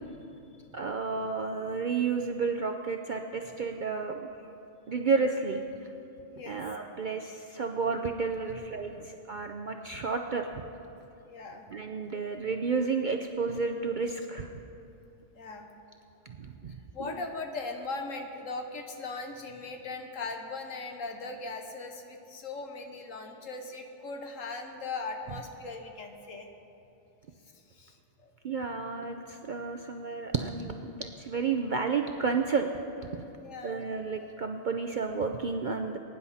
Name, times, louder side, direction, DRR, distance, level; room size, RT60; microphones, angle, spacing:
voice 1, 0.7-4.3 4.9-5.6 6.5-10.5 11.7-14.5 16.4-17.1 28.4-32.7 33.1-33.2 33.6-36.0, right 5 dB, 55° right, 4 dB, 0.5 m, -31 dB
voice 2, 6.3-6.6 8.5-8.6 9.0-9.1 11.2-11.6 15.3-15.7 16.9-26.5 27.5-28.0 28.2-28.3 33.4-33.8, left 3 dB, 70° left, 4 dB, 1.5 m, -39 dB
21.5 x 10.5 x 4.2 m, 2.9 s
omnidirectional pair, 1.4 m